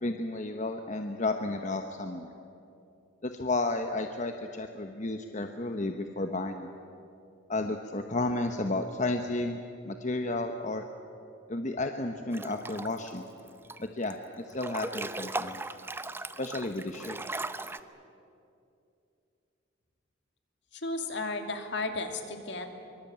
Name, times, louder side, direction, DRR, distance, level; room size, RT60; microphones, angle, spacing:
voice 1, 0.0-2.3 3.2-6.7 7.5-9.6 9.8-10.8 11.5-13.2 13.8-14.2 14.4-15.6 16.4-17.2, left 2 dB, 40° left, 5 dB, 1.1 m, -32 dB
Breathing / Bathtub (filling or washing) / Splash splatter, 12.3-13.1 13.5-14.1 14.5-17.8, right 2 dB, 10° right, 0.7 m, -37 dB
voice 2, 20.7-22.7, left 2 dB, 65° left, 5 dB, 2.6 m, -34 dB
24.5 x 23.5 x 8.8 m, 2.7 s
head